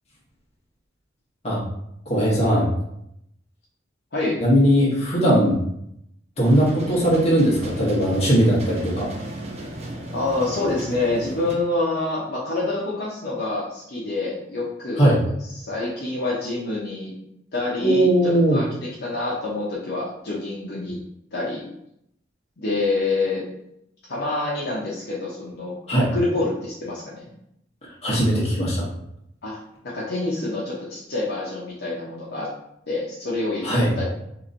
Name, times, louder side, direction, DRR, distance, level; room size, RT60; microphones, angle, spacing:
voice 1, 2.1-2.7 4.4-5.6 6.4-9.1 15.0-15.2 17.8-18.6 25.9-26.1 28.0-28.8 33.6-34.0, equal, 35° left, -5 dB, 1.1 m, -19 dB
voice 2, 4.1-4.4 10.1-15.1 15.6-17.2 17.5-21.0 21.3-21.6 22.6-23.5 24.1-25.7 26.1-27.3 29.4-32.5 32.9-34.1, left 2 dB, 60° left, -6 dB, 0.7 m, -27 dB
sound 1, 6.4-11.6, right 1 dB, 35° right, 0.5 m, -34 dB
2.9 x 2.5 x 3.9 m, 0.77 s
head